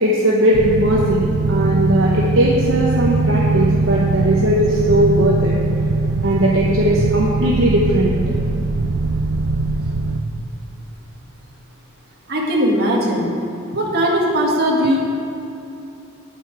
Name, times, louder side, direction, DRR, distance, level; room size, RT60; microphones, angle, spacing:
voice 1, 0.0-5.6 6.2-8.3, right 1 dB, 60° right, -5 dB, 1.0 m, -18 dB
sound 1, 0.5-10.2, right 3 dB, 80° right, 0.6 m, -20 dB
voice 2, 12.3-13.3 13.7-15.0, equal, 45° right, -3 dB, 1.8 m, -18 dB
9.5 x 8.1 x 4.8 m, 2.9 s
head